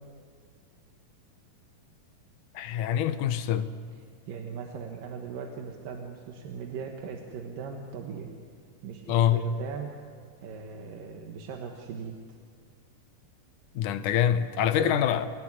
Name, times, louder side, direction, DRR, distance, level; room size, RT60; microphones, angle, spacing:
voice 1, 2.6-3.7 9.1-9.5 13.8-15.3, left 10 dB, 75° left, 2.3 m, -25 dB
voice 2, 4.0-8.3 8.8-9.9 10.4-12.2 14.8-15.0, right 6 dB, 85° right, 3.1 m, -39 dB
29.5 x 12.5 x 9.8 m
omnidirectional pair, 3.8 m